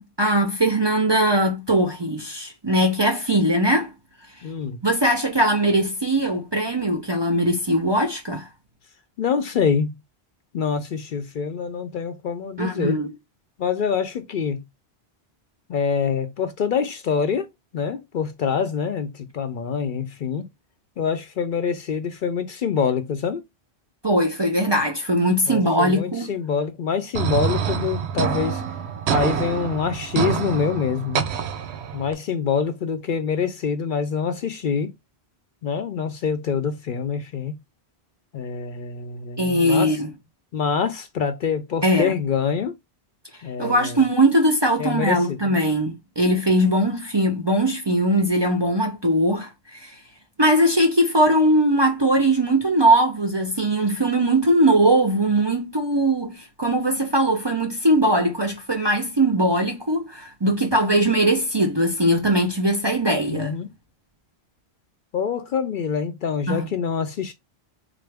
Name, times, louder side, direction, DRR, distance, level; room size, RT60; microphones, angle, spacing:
voice 1, 0.0-3.9 4.8-8.5 12.6-13.1 24.0-26.3 39.4-40.1 41.8-42.1 43.6-49.9 50.4-63.5 66.5-66.7, right 1 dB, 30° right, 0.5 m, -20 dB
voice 2, 4.4-4.8 9.2-9.9 10.5-13.0 13.6-14.6 15.7-17.5 17.7-20.5 21.0-23.4 25.5-28.6 29.1-31.3 31.9-34.9 35.6-37.6 38.3-40.0 40.5-42.7 43.4-44.0 44.8-45.6 63.3-63.7 65.1-67.3, left 6 dB, 60° left, 0.6 m, -25 dB
sound 1, 27.1-32.1, right 8 dB, 85° right, 0.8 m, -26 dB
3.7 x 2.5 x 3.3 m
omnidirectional pair, 1.1 m